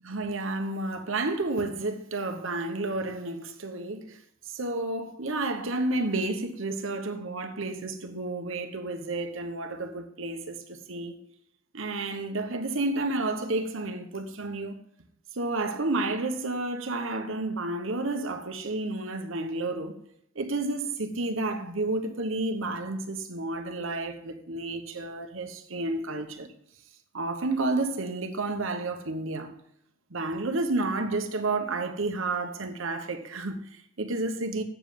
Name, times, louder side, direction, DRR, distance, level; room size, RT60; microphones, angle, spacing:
voice 1, 0.0-4.2 4.5-11.2 11.7-14.7 15.4-20.0 20.3-26.5 27.1-29.5 30.1-34.6, right 2 dB, 75° right, 1.1 m, -31 dB
8.1 x 7.3 x 7.3 m
head